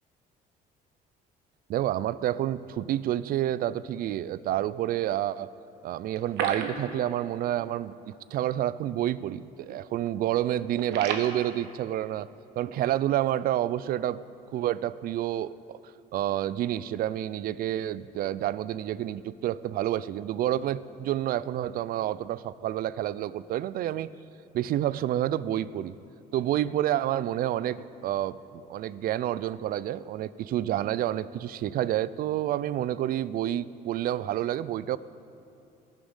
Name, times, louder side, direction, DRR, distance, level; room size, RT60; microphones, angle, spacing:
voice 1, 1.7-5.5 5.8-12.3 12.6-14.2 14.5-15.8 16.1-24.1 24.5-26.0 26.3-35.0, right 12 dB, 60° right, 18 dB, 0.4 m, -29 dB
sound 1, 6.1-7.4 7.6-7.8 8.1-8.2 8.8-9.1 9.4-9.7 10.1-11.3, right 6 dB, 85° right, 1.1 m, -34 dB
20.0 x 7.2 x 5.6 m, 2.7 s
cardioid pair, 110°, 17 cm